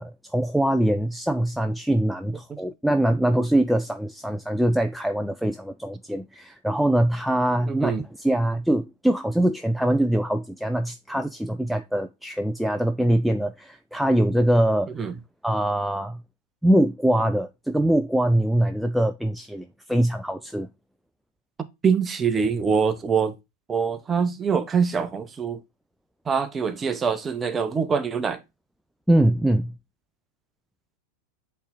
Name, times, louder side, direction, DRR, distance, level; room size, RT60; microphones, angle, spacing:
voice 1, 0.0-14.9 15.4-16.2 16.6-20.7 29.1-29.7, right 1 dB, ahead, 0.4 m, -23 dB
voice 2, 7.7-8.0 15.0-15.1 21.8-23.3 23.7-25.6 26.3-28.4, right 6 dB, 20° right, 0.8 m, -24 dB
8.0 x 3.3 x 3.8 m
figure-of-eight pair, 90°, 0 cm